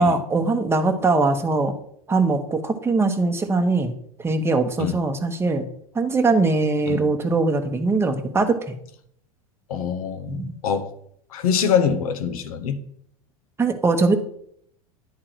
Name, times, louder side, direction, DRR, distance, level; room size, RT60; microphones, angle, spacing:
voice 1, 0.0-1.7 2.1-3.9 4.2-5.7 5.9-8.7 10.3-10.6 13.6-14.2, right 3 dB, 15° right, 1.0 m, -21 dB
voice 2, 9.7-10.9 11.3-12.8, left 7 dB, 75° left, 0.9 m, -24 dB
10.5 x 3.7 x 4.6 m
hypercardioid pair, 90°, 19 cm